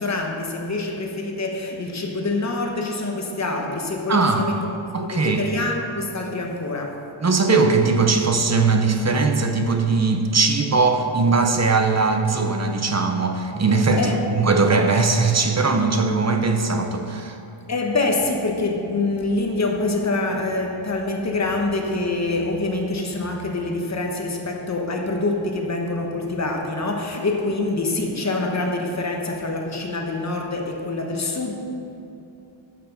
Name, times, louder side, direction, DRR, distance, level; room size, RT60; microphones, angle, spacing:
voice 1, 0.0-4.7 5.0-7.1 14.0-14.2 17.7-31.5, left 2 dB, 35° left, 1 dB, 1.1 m, -25 dB
voice 2, 4.1-4.5 4.9-5.5 7.2-17.4, right 4 dB, 35° right, 5 dB, 0.7 m, -20 dB
10.5 x 6.0 x 5.8 m, 2.8 s
wide cardioid pair, 160°, 50 cm